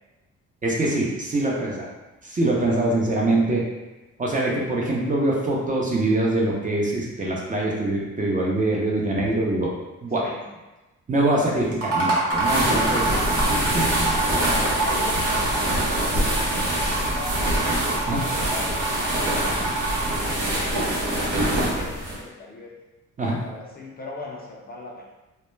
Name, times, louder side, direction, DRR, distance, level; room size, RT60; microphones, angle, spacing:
voice 1, 0.6-1.9 2.2-3.6 4.2-9.7 10.0-10.3 11.1-13.0 13.7-14.1 18.1-18.2 23.2-23.4, right 2 dB, 25° right, -3 dB, 0.6 m, -23 dB
sound 1, 11.7-20.3, right 3 dB, 50° right, 1.0 m, -26 dB
sound 2, 12.4-22.2, right 1 dB, 75° right, 0.8 m, -25 dB
voice 2, 12.7-13.8 14.0-17.6 18.1-22.7 23.2-25.1, left 2 dB, 30° left, -2 dB, 0.4 m, -38 dB
2.1 x 2.1 x 3.1 m, 1.1 s
cardioid pair, 90°, 30 cm